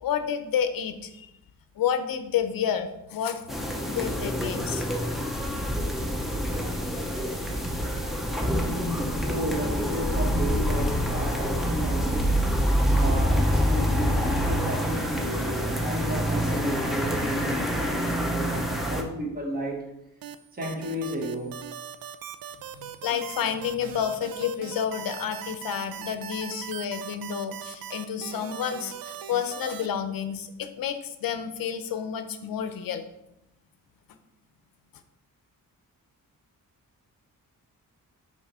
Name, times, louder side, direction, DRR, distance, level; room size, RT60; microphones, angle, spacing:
voice 1, 0.0-1.3 1.8-3.4 3.9-4.8 22.7-33.0, left 8 dB, 80° left, 0.7 m, -30 dB
sound 1, 3.5-19.0, equal, ahead, 0.6 m, -26 dB
voice 2, 8.6-19.9 20.5-21.7, right 1 dB, 25° right, 1.2 m, -33 dB
sound 2, 20.2-29.9, right 9 dB, 80° right, 0.5 m, -40 dB
5.9 x 4.1 x 5.5 m
wide cardioid pair, 170°, 34 cm